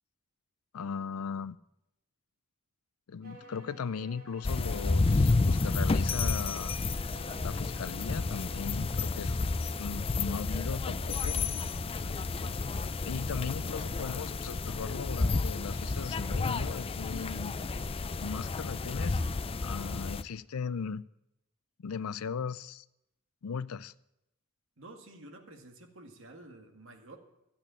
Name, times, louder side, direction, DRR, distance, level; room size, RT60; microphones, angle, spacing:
voice 1, 0.7-1.6 3.1-6.7 7.1-9.4 9.8-11.4 13.1-17.5 18.2-19.2 19.6-21.1 21.8-22.8 23.4-23.9, left 6 dB, 85° left, 0.5 m, -38 dB
sound 1, 3.2-8.7, right 2 dB, 45° right, 4.2 m, -52 dB
sound 2, 4.4-20.2, left 3 dB, 25° left, 0.4 m, -31 dB
voice 2, 24.8-27.2, right 2 dB, 65° right, 2.0 m, -50 dB
13.0 x 8.6 x 8.8 m
head